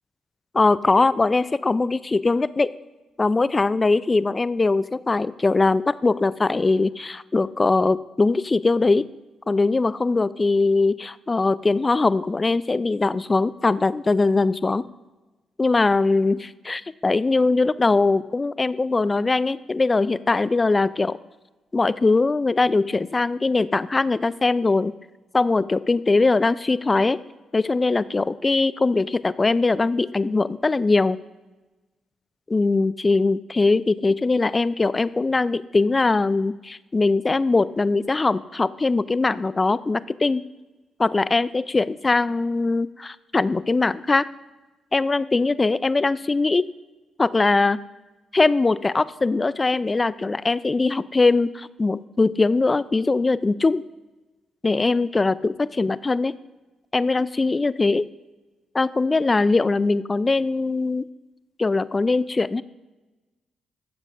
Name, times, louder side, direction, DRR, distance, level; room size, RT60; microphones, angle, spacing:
voice 1, 0.5-2.7 3.2-9.0 9.5-14.8 15.6-21.2 21.7-24.9 25.3-27.2 27.5-31.2 32.5-40.4 41.0-44.2 44.9-46.6 47.2-47.8 48.3-53.8 54.6-56.3 56.9-58.1 58.7-61.1 61.6-62.6, left 3 dB, 30° left, 17 dB, 0.3 m, -21 dB
15.0 x 7.4 x 2.5 m, 1.2 s
supercardioid pair, 50°, 0 cm